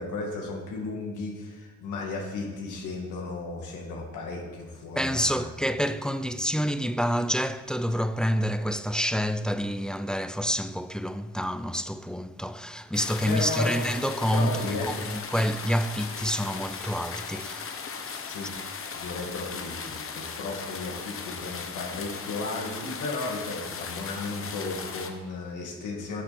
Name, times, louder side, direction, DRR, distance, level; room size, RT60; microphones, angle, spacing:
voice 1, 0.0-5.5 13.3-13.7 14.3-14.9 18.3-18.5 18.9-26.2, left 3 dB, 80° left, 2.3 m, -34 dB
voice 2, 5.0-17.8, equal, 5° left, 0.4 m, -28 dB
sound 1, 12.9-25.1, left 5 dB, 45° left, 1.2 m, -37 dB
11.0 x 7.4 x 4.3 m
cardioid pair, 90°, 30 cm